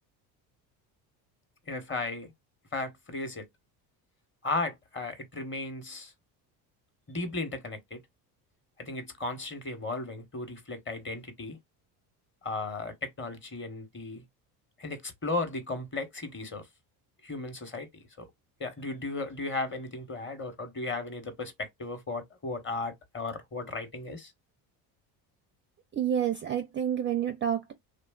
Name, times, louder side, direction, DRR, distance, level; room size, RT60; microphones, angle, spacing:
voice 1, 1.7-2.3 2.7-3.5 4.4-6.1 7.1-8.0 8.8-11.6 12.4-14.2 14.8-16.7 17.2-18.3 18.6-24.3, left 3 dB, 25° left, 0.9 m, -35 dB
voice 2, 25.9-27.7, right 9 dB, 25° right, 0.4 m, -29 dB
3.0 x 2.3 x 2.2 m
supercardioid pair, 80°, 47 cm